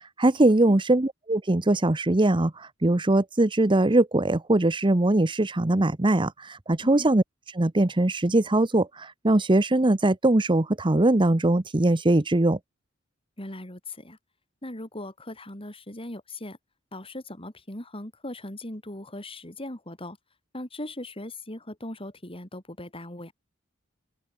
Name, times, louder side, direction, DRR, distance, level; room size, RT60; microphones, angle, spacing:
voice 1, 0.2-7.2 7.5-12.6, right 2 dB, 25° right, 0.9 m, -21 dB
voice 2, 13.4-14.2 14.6-16.6 16.9-20.2 20.5-23.3, left 1 dB, 30° left, 5.0 m, -39 dB
open air
head